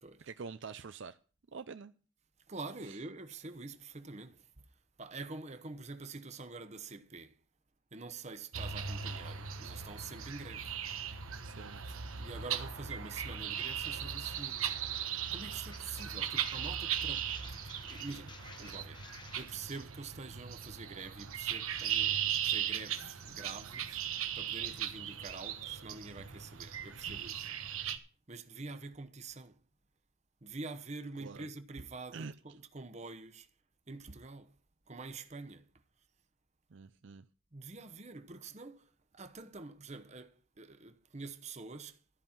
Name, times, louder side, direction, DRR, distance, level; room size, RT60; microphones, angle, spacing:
voice 1, 0.2-1.2 1.5-1.9 2.9-3.0 11.4-12.0 31.2-31.5 32.1-32.3 36.7-37.3, right 5 dB, 60° right, 0.5 m, -46 dB
voice 2, 2.5-4.6 5.0-7.4 7.9-10.7 12.2-14.8 15.1-24.0 24.3-27.6 28.3-29.6 30.4-33.5 33.9-34.6 34.9-35.6 37.5-42.0, right 3 dB, 30° right, 0.9 m, -46 dB
sound 1, 8.5-28.0, right 9 dB, 90° right, 1.3 m, -38 dB
sound 2, 14.2-19.8, left 4 dB, 20° left, 1.0 m, -55 dB
13.5 x 5.5 x 8.7 m
head